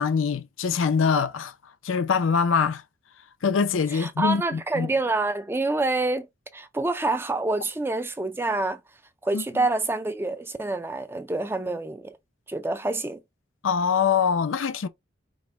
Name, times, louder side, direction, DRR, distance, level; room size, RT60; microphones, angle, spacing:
voice 1, 0.0-1.5 1.8-2.8 3.4-4.9 9.3-9.4 13.6-14.9, left 6 dB, 90° left, 0.5 m, -23 dB
voice 2, 3.9-8.8 9.2-12.2 12.5-13.2, right 2 dB, 10° right, 0.3 m, -27 dB
5.1 x 2.1 x 3.6 m
head